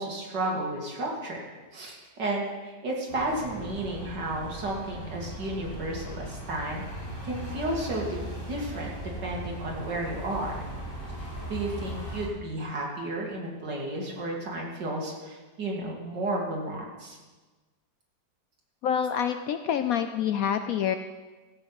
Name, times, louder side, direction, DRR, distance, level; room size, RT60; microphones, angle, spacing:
voice 1, 0.0-6.8 7.2-8.9 9.2-10.7 11.5-17.2, right 1 dB, 75° right, -2 dB, 2.9 m, -32 dB
sound 1, 3.1-12.3, equal, 30° left, 3.4 m, -38 dB
voice 2, 18.8-21.0, left 8 dB, 70° left, 9 dB, 0.9 m, -27 dB
15.5 x 7.8 x 5.8 m, 1.3 s
omnidirectional pair, 1.9 m